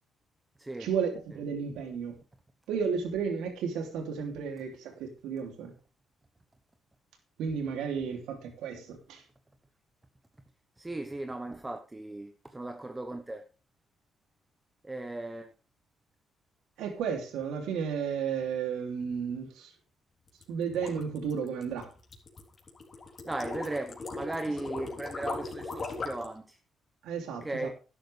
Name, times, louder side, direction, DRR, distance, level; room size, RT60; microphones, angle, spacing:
voice 1, 0.8-2.2 2.7-5.7 7.4-9.2 16.8-19.7 20.5-21.9 27.0-27.7, right 6 dB, 90° right, 2.9 m, -33 dB
voice 2, 10.8-13.4 14.8-15.5 23.2-26.6 27.4-27.7, right 2 dB, 15° right, 1.1 m, -37 dB
sound 1, 20.3-26.3, left 3 dB, 40° left, 3.5 m, -39 dB
12.0 x 11.0 x 3.4 m
cardioid pair, 90°, 0 cm